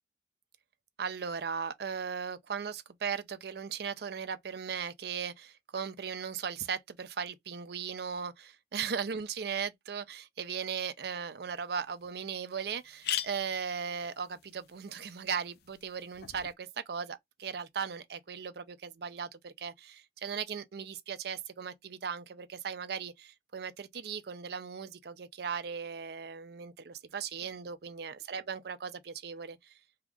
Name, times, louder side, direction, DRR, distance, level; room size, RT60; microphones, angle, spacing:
voice 1, 1.0-29.7, right 6 dB, 60° right, 0.5 m, -37 dB
sound 1, 11.5-11.6 12.0-12.1 12.3-12.4 12.8-16.5, left 10 dB, 60° left, 0.4 m, -41 dB
2.8 x 2.5 x 3.4 m
head